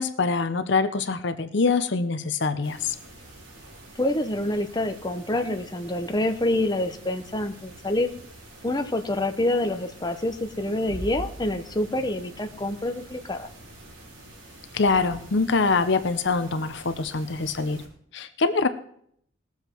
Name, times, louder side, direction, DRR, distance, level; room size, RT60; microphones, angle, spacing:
voice 1, 0.0-3.0 14.7-17.8 18.1-18.7, left 4 dB, 60° left, 11 dB, 0.8 m, -24 dB
sound 1, 2.6-17.9, right 1 dB, 80° right, 4.5 m, -45 dB
voice 2, 4.0-8.1 8.6-13.5, left 1 dB, 20° left, 5 dB, 0.9 m, -27 dB
19.5 x 7.3 x 4.5 m, 0.66 s
head